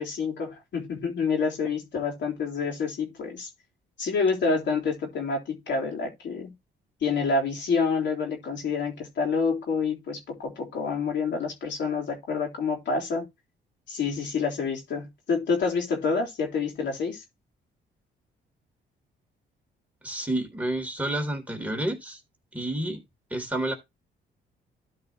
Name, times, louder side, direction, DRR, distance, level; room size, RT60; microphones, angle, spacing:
voice 1, 0.0-3.5 4.0-6.5 7.0-13.3 13.9-17.2, left 4 dB, 65° left, 3.7 m, -28 dB
voice 2, 20.0-22.2 22.5-23.0 23.3-23.7, right 1 dB, 5° right, 3.4 m, -29 dB
13.0 x 5.2 x 3.0 m
cardioid pair, 90°, 20 cm